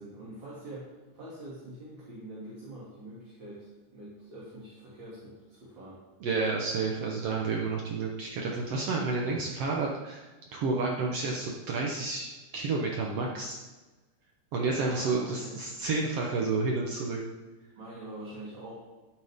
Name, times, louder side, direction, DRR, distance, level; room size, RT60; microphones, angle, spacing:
voice 1, 0.0-6.0 14.9-15.5 17.8-18.7, right 1 dB, 35° right, -8 dB, 2.8 m, -45 dB
voice 2, 6.2-10.2 10.5-12.3 12.5-13.6 14.5-17.2, right 3 dB, 80° right, -1 dB, 1.3 m, -30 dB
12.0 x 9.4 x 3.6 m, 1.2 s
omnidirectional pair, 4.2 m